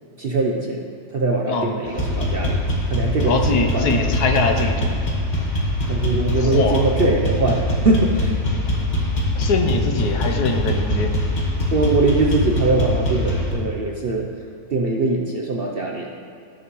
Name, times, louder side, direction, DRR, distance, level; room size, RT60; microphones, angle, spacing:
voice 1, 0.2-2.6 2.9-4.1 4.5-4.7 5.9-8.3 11.7-14.3 14.7-16.1, right 3 dB, 55° right, 0 dB, 0.7 m, -22 dB
sound 1, 1.9-13.5, left 1 dB, 30° left, 1.5 m, -22 dB
voice 2, 3.2-4.9 6.4-6.8 9.4-11.1, left 3 dB, 75° left, 4 dB, 1.4 m, -22 dB
17.5 x 6.4 x 3.1 m, 2.4 s
omnidirectional pair, 1.7 m